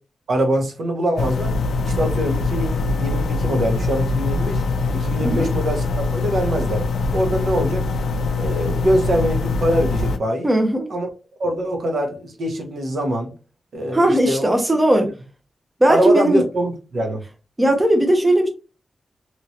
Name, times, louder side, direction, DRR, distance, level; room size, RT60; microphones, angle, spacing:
voice 1, 0.3-1.5 1.8-4.6 4.9-6.8 7.1-7.9 8.4-10.5 10.9-11.1 11.4-13.3 13.7-14.5 14.9-15.0 15.9-17.2, equal, 65° right, 0.9 m, -23 dB
sound 1, 1.2-10.2, left 3 dB, 80° left, 0.4 m, -23 dB
voice 2, 10.4-10.9 13.9-15.1 15.8-16.4 17.6-18.5, right 1 dB, 15° right, 0.6 m, -17 dB
3.0 x 2.9 x 2.7 m
wide cardioid pair, 130°, 0 cm